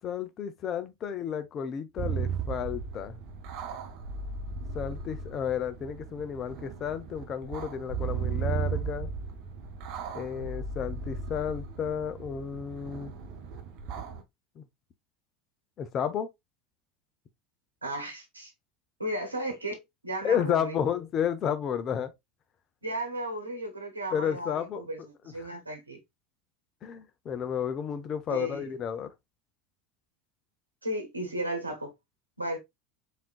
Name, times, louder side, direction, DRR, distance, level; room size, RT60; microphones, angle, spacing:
voice 1, 0.0-3.2 4.7-9.1 10.1-13.1 14.6-14.7 15.8-16.3 20.2-22.1 24.1-24.8 26.8-29.1, left 8 dB, 40° left, 0.7 m, -32 dB
sound 1, 2.0-14.2, right 6 dB, 55° right, 0.8 m, -36 dB
voice 2, 17.8-18.5 19.0-20.8 22.8-25.0 25.2-26.0 28.3-28.7 30.8-31.9 32.4-32.6, right 1 dB, 90° right, 1.0 m, -34 dB
4.2 x 3.7 x 2.3 m
figure-of-eight pair, 75°, 0 cm